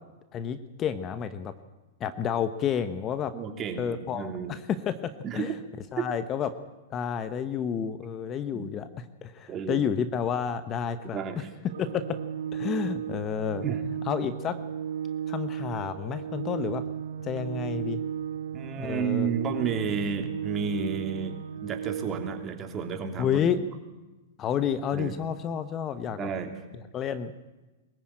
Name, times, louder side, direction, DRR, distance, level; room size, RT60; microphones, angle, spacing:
voice 1, 0.3-1.5 2.0-3.3 3.8-5.6 5.9-6.5 6.9-11.2 11.8-12.2 12.5-13.6 14.0-14.6 15.3-16.8 17.2-18.0 18.7-19.3 23.2-23.6 24.4-26.3 26.9-27.3, left 8 dB, 30° left, 12 dB, 1.1 m, -30 dB
voice 2, 3.3-4.6 5.2-5.6 6.0-6.1 8.5-8.7 9.5-9.8 11.1-11.5 13.6-13.8 18.5-23.5 24.9-25.1 26.2-26.5, right 6 dB, 25° right, 4 dB, 3.1 m, -32 dB
Organ, 11.7-22.7, right 8 dB, 80° right, 0.7 m, -35 dB
22.5 x 14.5 x 8.9 m, 1.1 s
hypercardioid pair, 120°, 0 cm